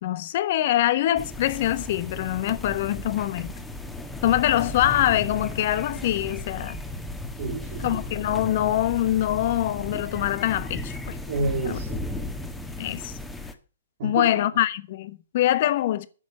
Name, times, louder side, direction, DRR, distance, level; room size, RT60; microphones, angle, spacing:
voice 1, 0.0-3.5 4.2-6.8 7.8-11.2 11.6-11.8 12.8-13.2 14.0-16.1, left 13 dB, 50° left, 1.0 m, -24 dB
sound 1, 1.2-13.5, left 2 dB, 5° left, 1.5 m, -35 dB
voice 2, 7.4-8.1 11.3-12.3 14.0-14.4, right 3 dB, 55° right, 2.7 m, -30 dB
10.0 x 6.4 x 8.0 m
hypercardioid pair, 130°, 0 cm